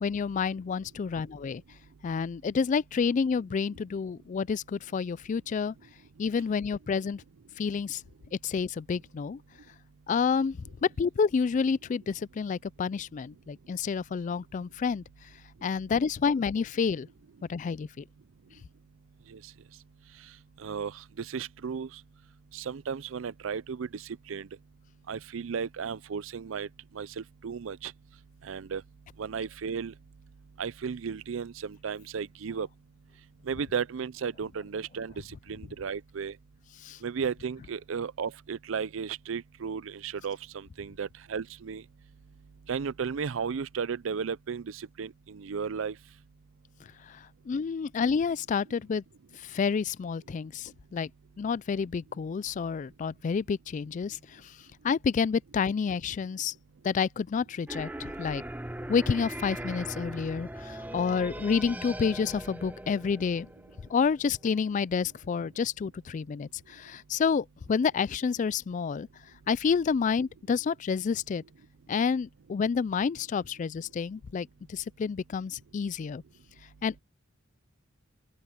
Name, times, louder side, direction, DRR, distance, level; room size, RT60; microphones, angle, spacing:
voice 1, 0.0-1.6 2.0-5.7 6.2-7.2 7.6-8.0 8.4-9.4 10.1-15.0 15.6-17.1 17.5-18.0 36.8-37.0 47.1-47.2 47.5-49.0 49.4-51.1 51.4-54.4 54.8-56.5 56.8-58.4 58.9-63.5 63.9-69.1 69.5-71.4 71.9-76.2 76.8-77.0, left 5 dB, 40° left, 0.3 m, -29 dB
voice 2, 20.6-21.9 22.5-24.0 24.3-24.5 25.1-26.7 26.9-27.9 28.4-28.8 29.2-29.9 30.6-32.7 33.5-35.1 35.5-36.3 37.0-41.8 42.7-45.9, right 6 dB, 80° right, 0.5 m, -34 dB
sound 1, 57.7-64.5, right 1 dB, 10° right, 0.9 m, -40 dB
open air
head